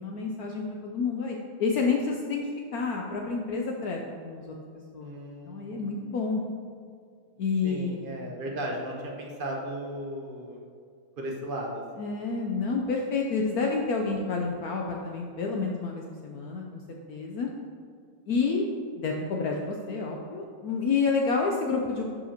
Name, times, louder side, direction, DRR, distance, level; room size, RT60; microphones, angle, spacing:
voice 1, 0.0-2.4 2.7-4.0 4.2-4.5 4.9-5.1 5.5-6.4 7.4-8.2 12.0-16.8 17.1-17.5 18.3-18.7 19.0-22.0, left 4 dB, 90° left, 0 dB, 0.8 m, -29 dB
voice 2, 5.0-6.2 7.6-10.6 11.2-11.8, right 1 dB, 55° right, -1 dB, 0.5 m, -36 dB
11.5 x 5.4 x 2.9 m, 2.2 s
omnidirectional pair, 2.3 m